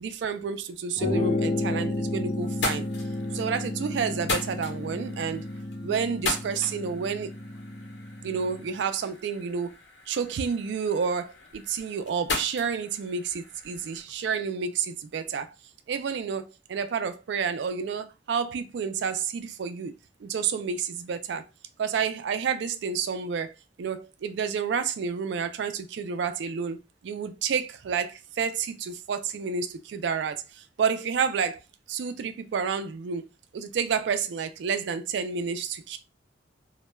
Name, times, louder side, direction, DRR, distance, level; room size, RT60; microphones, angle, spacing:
voice 1, 0.0-2.9 3.3-5.4 5.8-7.3 8.2-9.8 10.1-15.5 15.9-16.4 16.7-19.9 20.2-21.4 21.8-23.5 23.8-31.6 31.9-33.3 33.5-36.0, right 6 dB, 75° right, 0.3 m, -30 dB
sound 1, 1.0-8.7, left 2 dB, 30° left, 0.4 m, -32 dB
sound 2, 1.6-2.1 2.4-14.0, left 3 dB, 70° left, 0.9 m, -38 dB
2.1 x 2.1 x 3.0 m
head